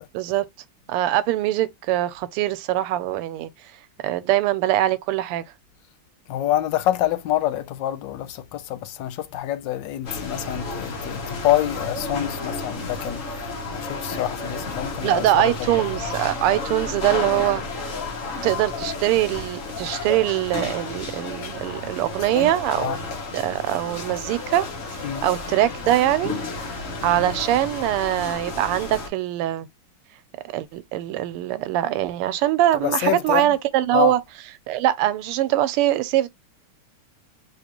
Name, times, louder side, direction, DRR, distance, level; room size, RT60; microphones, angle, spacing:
voice 1, 0.1-0.5 0.9-3.5 4.0-5.4 15.0-17.6 18.4-23.1 23.3-24.7 25.2-26.3 27.0-29.7 30.5-34.2 34.7-36.3, right 13 dB, 90° right, 1.5 m, -22 dB
voice 2, 6.3-13.2 13.7-15.2 22.4-22.5 22.8-23.0 25.0-25.2 27.0-27.1 32.8-33.4 33.9-34.1, left 13 dB, 75° left, 1.1 m, -26 dB
sound 1, 10.0-29.1, left 3 dB, 50° left, 1.1 m, -32 dB
3.7 x 2.9 x 2.9 m
omnidirectional pair, 2.4 m